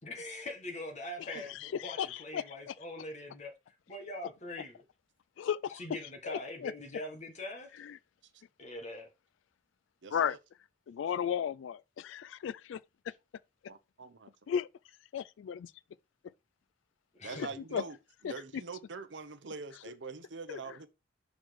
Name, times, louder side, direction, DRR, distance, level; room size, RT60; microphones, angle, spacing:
voice 1, 0.0-4.8 5.7-7.7 8.6-9.1 17.1-17.5, left 1 dB, 35° left, 1.7 m, -43 dB
voice 2, 1.5-2.7 5.4-5.8 6.2-6.7 7.8-8.0 10.1-10.4 10.9-12.8 14.5-14.7 15.1-15.7 17.3-17.8 18.2-18.3 20.5-20.6, left 8 dB, 85° left, 0.3 m, -35 dB
voice 3, 10.0-10.4 13.7-14.3 17.2-17.9 18.2-20.9, right 4 dB, 70° right, 0.8 m, -44 dB
6.1 x 4.0 x 4.7 m
head